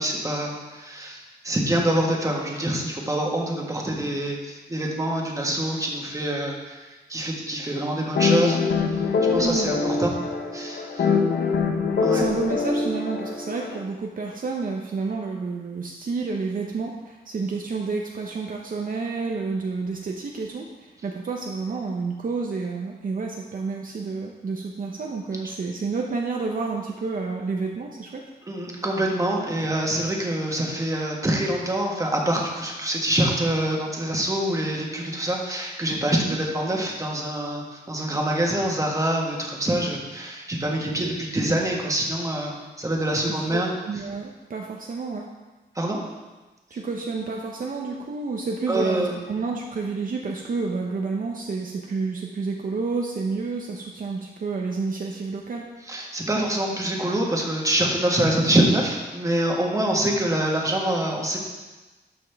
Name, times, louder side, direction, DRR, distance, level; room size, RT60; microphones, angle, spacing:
voice 1, 0.0-6.8 7.1-8.6 9.3-10.2 10.5-11.1 12.0-12.2 28.5-43.7 45.7-46.0 48.7-49.1 55.9-61.4, right 1 dB, 20° right, -1 dB, 1.6 m, -25 dB
sound 1, 8.2-13.8, left 5 dB, 70° left, 0.8 m, -24 dB
voice 2, 9.4-9.7 12.1-28.2 36.2-36.4 43.3-43.4 43.9-45.3 46.7-55.7 59.8-60.0, right 4 dB, 55° right, 0 dB, 0.8 m, -30 dB
12.5 x 5.4 x 3.5 m, 1.2 s
wide cardioid pair, 105°, 18 cm